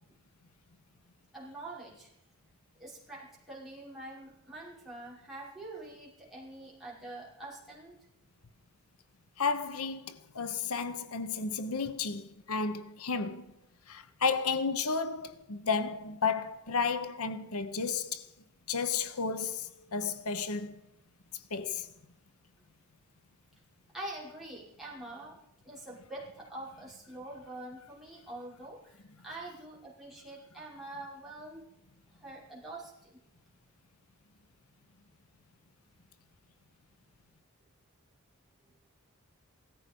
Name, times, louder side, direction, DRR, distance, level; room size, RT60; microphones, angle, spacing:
voice 1, 1.3-2.1 2.8-7.9 23.9-25.4 25.6-31.6 32.2-33.2, right 2 dB, ahead, 5.6 m, -45 dB
voice 2, 9.4-13.5 13.9-18.3 18.7-20.8 21.5-21.9, left 5 dB, 85° left, 1.0 m, -32 dB
16.5 x 14.0 x 5.4 m
head